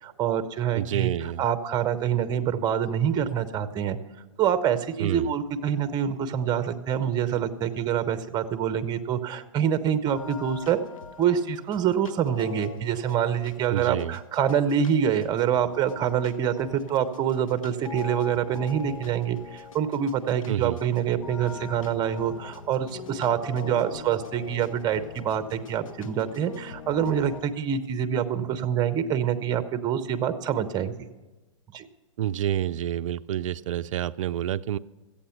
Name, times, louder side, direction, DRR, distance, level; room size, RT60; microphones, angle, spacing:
voice 1, 0.0-1.1 1.4-4.0 4.4-10.8 11.2-31.1 31.7-31.9, right 8 dB, 25° right, 12 dB, 0.8 m, -26 dB
voice 2, 0.7-1.4 5.0-5.3 13.7-14.2 20.5-20.8 32.2-34.8, right 11 dB, 75° right, 12 dB, 0.4 m, -28 dB
sound 1, 10.1-27.4, left 6 dB, 80° left, 0.9 m, -42 dB
14.5 x 8.6 x 5.8 m, 1.2 s
hypercardioid pair, 125°, 17 cm